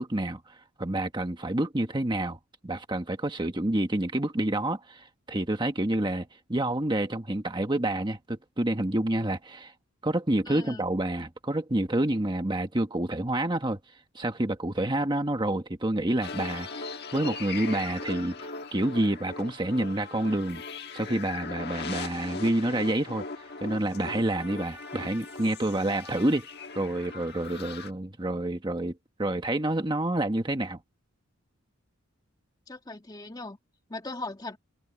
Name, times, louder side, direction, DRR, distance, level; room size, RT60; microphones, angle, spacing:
voice 1, 0.0-9.7 10.0-13.8 14.1-20.6 20.9-23.2 23.6-26.5 26.7-28.9 29.2-30.8, right 1 dB, 20° right, 1.3 m, -28 dB
voice 2, 10.5-10.8 32.7-33.6 33.9-34.6, left 2 dB, 20° left, 1.8 m, -38 dB
sound 1, 16.2-27.9, left 4 dB, 50° left, 1.4 m, -39 dB
head